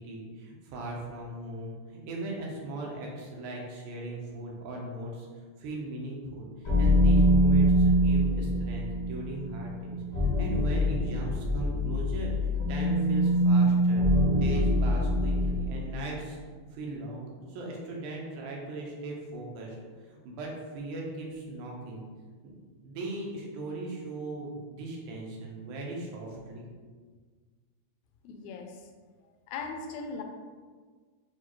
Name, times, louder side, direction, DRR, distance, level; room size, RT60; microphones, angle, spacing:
voice 1, 0.0-5.3 5.6-14.1 14.3-16.4 16.7-19.8 20.1-22.1 22.4-22.5 22.8-26.7, right 2 dB, 85° right, -1 dB, 2.3 m, -38 dB
sound 1, 6.6-15.8, equal, 40° left, 1.2 m, -24 dB
voice 2, 28.2-28.9 29.5-30.2, left 4 dB, 85° left, 4 dB, 1.9 m, -39 dB
6.5 x 2.3 x 3.0 m, 1.5 s
omnidirectional pair, 3.4 m